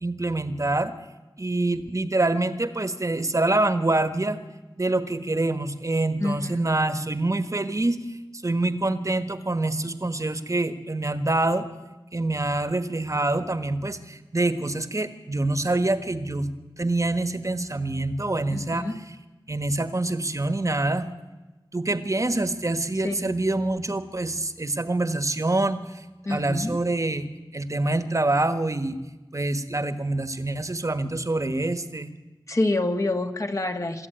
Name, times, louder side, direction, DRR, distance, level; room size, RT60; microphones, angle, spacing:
voice 1, 0.0-0.9 1.4-4.4 4.8-8.2 8.4-11.7 12.1-18.9 19.5-21.1 21.7-25.8 26.3-29.0 29.3-32.1, right 2 dB, 40° right, 11 dB, 1.4 m, -26 dB
voice 2, 6.2-6.6 18.5-19.0 23.0-23.3 26.3-26.8 32.5-34.1, left 2 dB, 35° left, 5 dB, 1.7 m, -27 dB
23.5 x 13.5 x 9.2 m, 1.1 s
wide cardioid pair, 75°, 9 cm